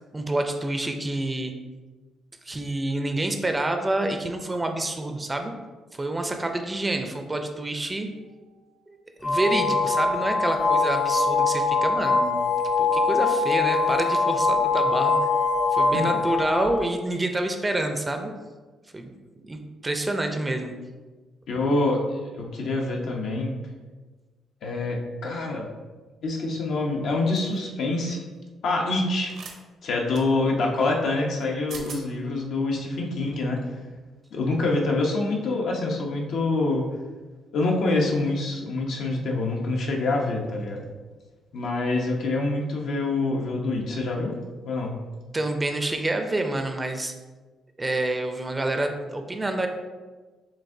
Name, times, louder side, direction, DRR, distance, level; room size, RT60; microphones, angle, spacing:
voice 1, 0.1-1.5 2.4-5.5 5.9-8.1 8.9-12.4 12.8-15.2 15.7-18.3 18.9-19.1 19.4-20.7 45.3-47.1 47.8-49.7, right 2 dB, 20° right, 5 dB, 0.5 m, -27 dB
sound 1, 9.2-16.8, left 4 dB, 35° left, 0.7 m, -23 dB
voice 2, 21.5-23.5 24.6-25.7 26.2-28.2 28.6-29.3 29.8-33.6 34.3-36.8 37.5-40.8 41.5-44.4 44.6-44.9, left 2 dB, 70° left, 0 dB, 0.8 m, -26 dB
sound 2, 27.4-27.6 29.3-29.6 30.1-30.3 31.4-31.5 31.7-32.0, right 5 dB, 70° right, 0.7 m, -40 dB
7.1 x 2.5 x 2.6 m, 1.3 s
cardioid pair, 90°, 0 cm